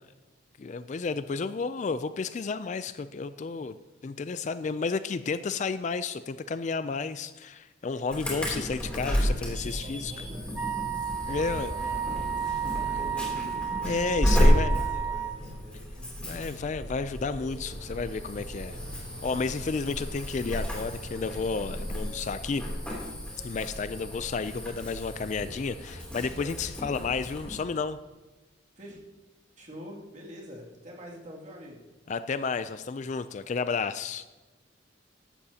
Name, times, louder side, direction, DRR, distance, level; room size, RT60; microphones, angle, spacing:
voice 1, 0.6-3.8 4.0-10.1 11.3-11.7 13.8-14.8 16.2-22.7 23.4-28.0 32.1-34.3, left 4 dB, 35° left, 13 dB, 0.3 m, -32 dB
Insect / Alarm, 8.1-27.6, equal, 5° left, 3.0 m, -31 dB
voice 2, 9.6-10.5 11.6-13.4 14.5-16.1 28.8-29.0 29.6-31.8, equal, 40° right, -3 dB, 2.4 m, -46 dB
Wind instrument woodwind instrument, 10.5-15.4, right 8 dB, 10° right, 0.9 m, -32 dB
sound 1, 17.7-22.8, right 1 dB, 75° right, 1.9 m, -51 dB
14.5 x 11.5 x 2.8 m, 1.2 s
head